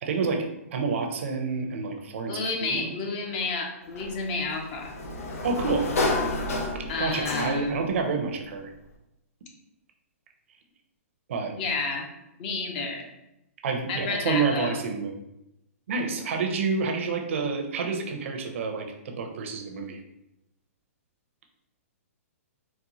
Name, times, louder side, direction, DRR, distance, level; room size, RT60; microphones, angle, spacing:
voice 1, 0.0-2.9 5.4-5.9 7.0-8.7 11.3-11.5 13.6-15.1 15.9-20.0, right 4 dB, 60° right, 3 dB, 0.6 m, -28 dB
voice 2, 2.3-4.9 6.9-7.8 11.6-12.1 12.4-13.1 13.9-14.8, left 3 dB, 40° left, 2 dB, 0.6 m, -30 dB
Sliding door, 3.9-7.9, left 2 dB, 75° left, 0.6 m, -30 dB
4.0 x 2.1 x 2.9 m, 0.88 s
hypercardioid pair, 150°, 8 cm